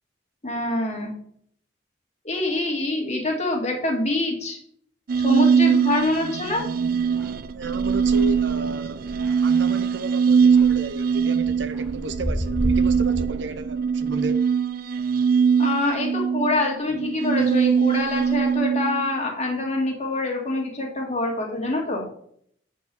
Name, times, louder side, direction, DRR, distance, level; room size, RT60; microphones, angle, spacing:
voice 1, 0.4-1.1 2.2-4.6 5.1-6.6 15.6-22.1, left 2 dB, 35° left, 2.1 m, -25 dB
sound 1, 5.1-19.1, right 6 dB, 50° right, 0.3 m, -22 dB
voice 2, 5.6-5.9 7.5-9.0 9.4-14.5, right 2 dB, 70° right, 0.7 m, -33 dB
sound 2, 6.2-6.3 7.0-10.0 10.4-13.2, equal, ahead, 1.1 m, -32 dB
8.4 x 4.7 x 6.9 m
head